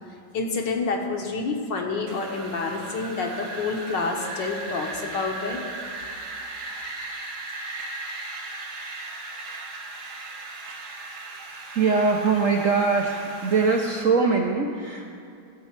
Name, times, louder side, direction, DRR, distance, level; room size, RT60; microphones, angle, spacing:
voice 1, 0.3-5.6, left 3 dB, 65° left, 2 dB, 1.8 m, -28 dB
Wind, 2.1-14.0, right 2 dB, 85° right, 2.0 m, -37 dB
voice 2, 11.7-15.1, right 4 dB, 60° right, 0 dB, 0.8 m, -22 dB
14.5 x 5.4 x 7.4 m, 2.5 s
omnidirectional pair, 2.2 m